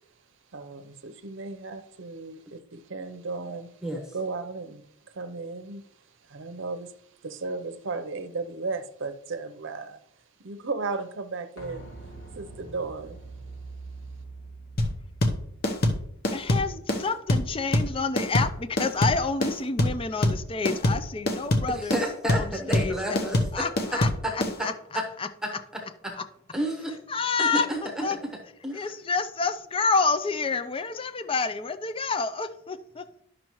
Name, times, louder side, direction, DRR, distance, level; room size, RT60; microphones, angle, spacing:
voice 1, 0.5-3.7 4.1-4.8 5.1-5.9 6.2-6.9 7.2-10.0 10.4-11.9 12.3-13.2, right 3 dB, 55° right, 0.7 m, -35 dB
sound 1, 11.6-17.2 17.5-17.6, right 3 dB, 85° left, 3.1 m, -44 dB
sound 2, 14.8-24.5, left 1 dB, 45° left, 0.9 m, -24 dB
voice 2, 16.3-22.0 22.3-23.0 23.5-24.1 24.6-24.7 25.2-25.3 27.1-27.7 28.0-28.2 28.7-33.0, left 4 dB, 25° left, 0.4 m, -28 dB
voice 3, 21.7-23.7 23.9-24.3 24.6-25.0 25.4-25.5 26.0-26.1 26.5-27.0 27.4-28.1 28.6-28.9, equal, 5° right, 1.0 m, -30 dB
11.0 x 6.3 x 3.0 m
head